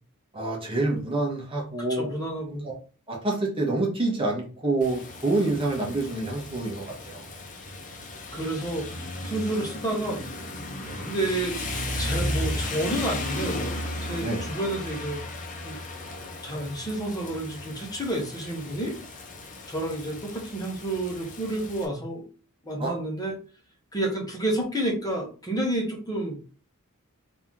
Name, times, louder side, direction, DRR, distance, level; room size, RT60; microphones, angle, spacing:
voice 1, 0.3-2.1 2.6-2.7 3.1-7.2 10.8-11.1 14.2-14.5 22.8-22.9, right 2 dB, 25° right, -2 dB, 1.3 m, -27 dB
voice 2, 1.9-2.7 8.3-10.2 11.0-11.6 12.0-13.6 14.0-15.2 15.6-15.8 16.4-18.9 19.7-22.2 22.6-23.3 23.9-26.4, right 1 dB, 15° left, -1 dB, 1.3 m, -30 dB
Rain, 4.8-21.9, left 1 dB, 35° left, 0.8 m, -35 dB
3.4 x 2.9 x 3.6 m, 0.36 s
head